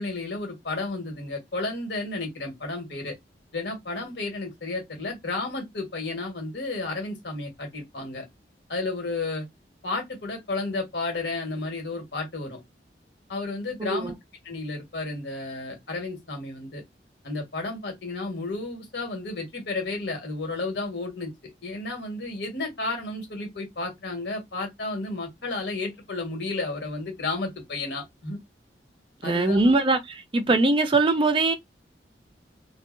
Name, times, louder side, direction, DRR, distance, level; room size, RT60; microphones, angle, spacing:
voice 1, 0.0-3.2 3.5-8.2 8.7-9.5 9.8-12.6 13.3-14.1 14.4-16.8 17.2-28.4 29.2-29.7, left 3 dB, 70° left, 1.2 m, -32 dB
voice 2, 13.8-14.1 29.2-31.5, right 2 dB, 30° right, 0.4 m, -22 dB
2.6 x 2.2 x 2.4 m
head